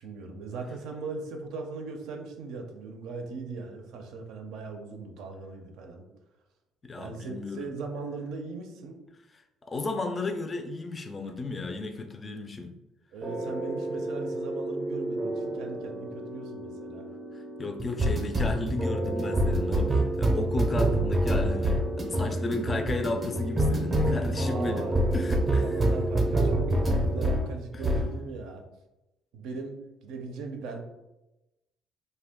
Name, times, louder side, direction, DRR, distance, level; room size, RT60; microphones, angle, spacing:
voice 1, 0.0-6.0 7.0-9.0 13.1-17.1 24.3-28.6 29.3-30.8, right 4 dB, 80° right, 4 dB, 0.5 m, -39 dB
voice 2, 6.8-7.7 9.6-12.7 17.3-21.8 22.1-24.9 25.1-25.6 27.7-27.8, left 2 dB, 30° left, 5 dB, 0.4 m, -33 dB
sound 1, 13.2-27.5 27.8-28.1, right 1 dB, 25° right, 0.5 m, -27 dB
2.6 x 2.2 x 3.5 m, 0.96 s
cardioid pair, 105°, 0 cm